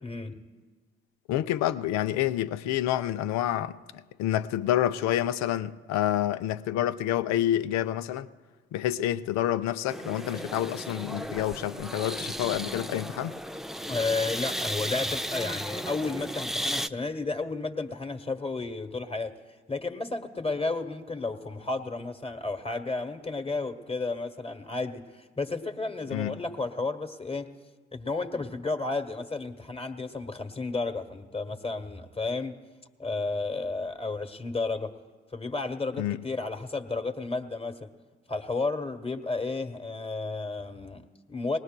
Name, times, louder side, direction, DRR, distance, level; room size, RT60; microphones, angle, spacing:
voice 1, 0.0-0.4 13.9-19.4 19.7-27.5 27.9-32.5 33.0-35.0 35.3-37.9 38.3-41.6, left 3 dB, 20° left, 1.3 m, -32 dB
voice 2, 1.3-8.3 8.7-13.3 26.1-26.4 36.0-36.2, left 12 dB, 65° left, 0.6 m, -28 dB
sound 1, 9.9-16.9, equal, ahead, 0.4 m, -34 dB
20.5 x 18.0 x 2.2 m
hypercardioid pair, 40°, 29 cm